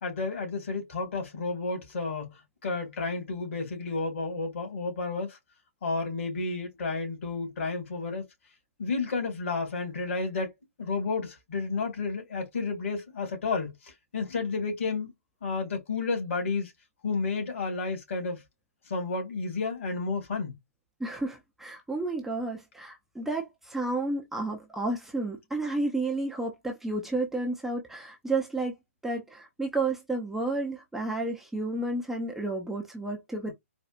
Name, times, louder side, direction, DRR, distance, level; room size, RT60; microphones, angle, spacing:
voice 1, 0.0-5.4 5.8-8.2 8.8-10.5 10.8-15.1 15.4-16.7 17.0-18.4 18.9-20.6, left 4 dB, 60° left, 2.3 m, -31 dB
voice 2, 21.0-28.7 29.0-33.5, right 2 dB, 5° right, 0.5 m, -31 dB
4.2 x 2.3 x 2.5 m
hypercardioid pair, 145°, 8 cm